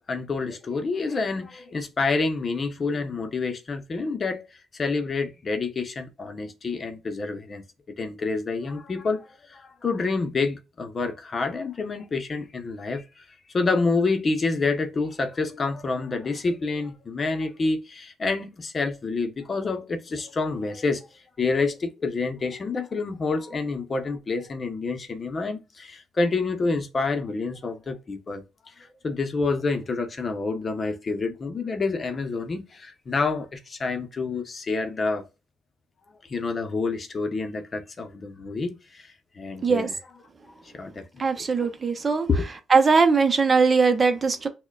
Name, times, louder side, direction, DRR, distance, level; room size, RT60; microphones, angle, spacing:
voice 1, 0.1-4.5 4.7-7.6 8.0-13.2 13.5-28.4 28.8-35.2 36.2-40.0 40.7-41.1 41.3-41.7 42.3-42.5, left 3 dB, 40° left, 0.7 m, -28 dB
voice 2, 41.2-42.3 42.7-44.5, right 4 dB, 35° right, 0.7 m, -20 dB
6.1 x 2.2 x 2.3 m
cardioid pair, 75°, 0 cm